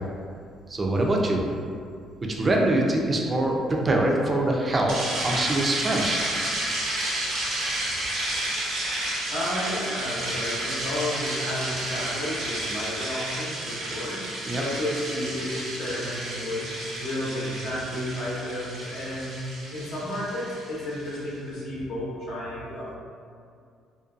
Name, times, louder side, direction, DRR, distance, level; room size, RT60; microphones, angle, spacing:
voice 1, 0.7-1.4 2.2-6.2 14.4-14.6, right 1 dB, 30° right, 0 dB, 0.4 m, -24 dB
sound 1, 4.9-21.2, right 1 dB, 80° right, 0.7 m, -31 dB
voice 2, 9.3-14.2 14.5-19.4 19.7-23.0, left 1 dB, 70° left, -7 dB, 0.8 m, -32 dB
2.5 x 2.2 x 2.4 m, 2.3 s
cardioid pair, 95°, 0 cm